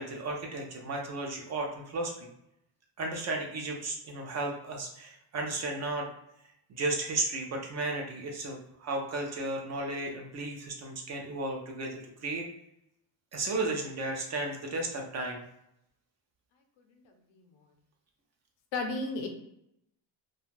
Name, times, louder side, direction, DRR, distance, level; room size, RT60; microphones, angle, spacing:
voice 1, 0.0-2.3 3.0-6.1 6.7-12.5 13.3-15.4, right 2 dB, 40° right, 1 dB, 0.4 m, -34 dB
voice 2, 17.0-17.5 18.7-19.3, left 3 dB, 80° left, 4 dB, 0.7 m, -34 dB
2.4 x 2.3 x 3.1 m, 0.78 s
cardioid pair, 170°, 44 cm